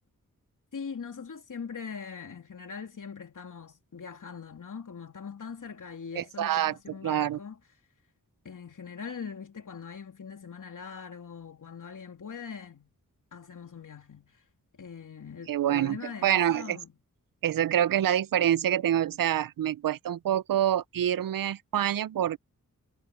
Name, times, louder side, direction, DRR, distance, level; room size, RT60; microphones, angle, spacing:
voice 1, 0.7-7.6 8.4-12.9 13.3-14.4 14.7-16.9, left 6 dB, 70° left, 3.1 m, -42 dB
voice 2, 6.2-6.7 7.0-7.4 15.5-16.8 17.4-22.4, right 11 dB, 85° right, 0.5 m, -26 dB
wide cardioid pair, 125°, 33 cm